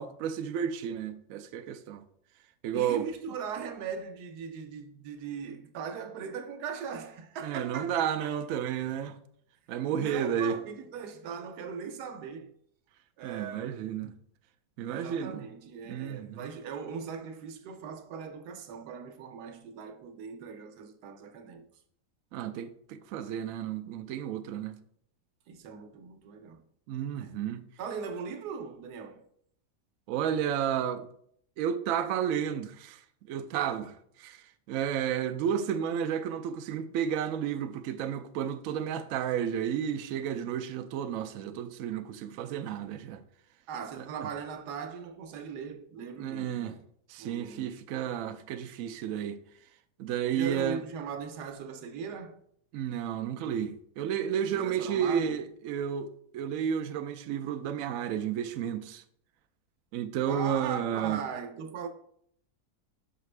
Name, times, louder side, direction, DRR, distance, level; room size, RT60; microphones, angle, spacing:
voice 1, 0.0-2.0 2.6-3.1 7.4-9.2 9.7-10.6 13.2-14.1 14.8-15.5 15.9-16.5 22.3-24.8 26.9-27.6 30.1-31.1 31.6-33.0 33.3-43.2 44.2-44.3 46.2-46.8 47.1-49.4 50.0-50.8 52.7-59.0 59.9-61.2, right 9 dB, 70° right, 0.9 m, -32 dB
voice 2, 2.7-8.3 9.9-12.5 13.2-13.8 14.9-21.7 25.5-26.6 27.1-27.4 27.8-29.2 43.7-46.8 47.2-47.7 50.3-52.4 54.5-55.4 60.3-61.9, right 6 dB, 90° right, 1.3 m, -39 dB
6.5 x 5.0 x 3.2 m
omnidirectional pair, 1.7 m